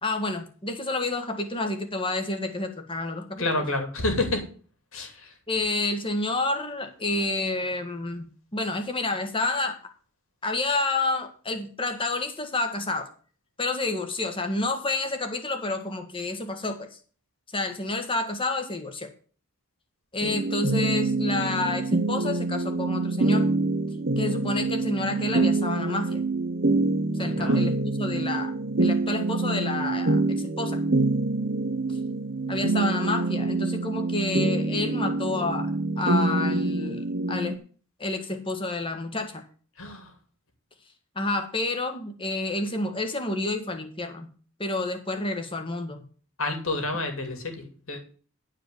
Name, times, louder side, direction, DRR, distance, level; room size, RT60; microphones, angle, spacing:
voice 1, 0.0-3.6 5.5-9.9 10.4-13.1 13.6-17.0 17.5-19.1 20.1-23.5 24.2-26.2 27.1-28.5 28.8-30.8 32.5-35.7 36.0-37.6 38.0-39.4 41.1-44.3 44.6-46.0, left 2 dB, 25° left, 6 dB, 1.6 m, -29 dB
voice 2, 3.4-4.4 4.9-5.3 27.2-27.6 39.8-40.1 46.4-48.0, left 2 dB, 65° left, 5 dB, 2.6 m, -29 dB
sound 1, 20.2-37.6, right 2 dB, 50° right, 1.0 m, -26 dB
11.0 x 5.0 x 7.9 m, 0.41 s
head